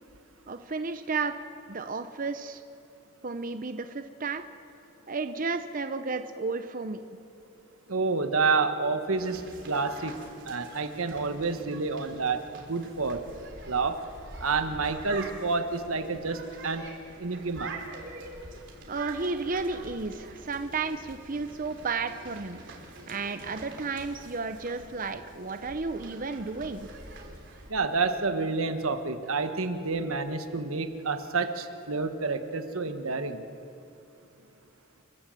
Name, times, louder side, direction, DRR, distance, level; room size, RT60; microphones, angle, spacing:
voice 1, 0.5-1.3 1.7-2.6 3.2-4.5 5.1-7.0 18.9-26.9, right 4 dB, 40° right, 8 dB, 0.8 m, -33 dB
voice 2, 7.9-10.2 10.4-13.2 13.6-14.0 14.4-16.9 17.2-17.8 27.7-33.4, right 4 dB, 85° right, 8 dB, 1.4 m, -29 dB
sound 1, 9.2-27.7, right 2 dB, 60° right, 3.4 m, -46 dB
29.5 x 12.5 x 7.8 m, 2.9 s
head